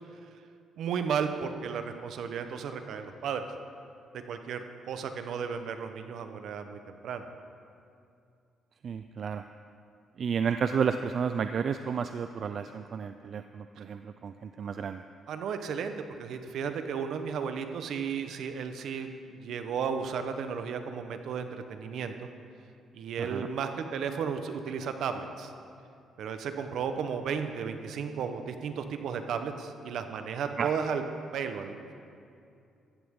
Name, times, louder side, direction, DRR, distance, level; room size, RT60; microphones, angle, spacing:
voice 1, 0.8-3.5 4.3-7.3 13.8-13.9 15.3-22.3 22.9-25.5 26.2-31.0 31.3-32.0, right 6 dB, 75° right, 7 dB, 1.0 m, -34 dB
voice 2, 8.8-9.4 10.2-15.0 23.2-23.5 30.6-30.7, right 6 dB, 55° right, 9 dB, 0.4 m, -31 dB
14.5 x 14.5 x 3.8 m, 2.5 s
cardioid pair, 90°, 0 cm